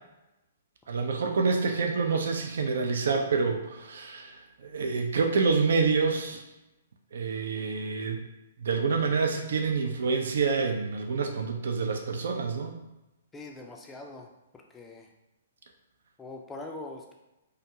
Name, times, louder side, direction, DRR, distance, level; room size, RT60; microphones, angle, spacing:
voice 1, 0.9-4.4 4.6-6.4 7.1-8.2 8.6-12.8, right 4 dB, 60° right, 3 dB, 0.4 m, -27 dB
voice 2, 13.3-15.1 16.2-17.1, left 2 dB, 10° left, 1 dB, 0.4 m, -43 dB
2.5 x 2.2 x 2.9 m, 0.98 s
figure-of-eight pair, 120°, 0 cm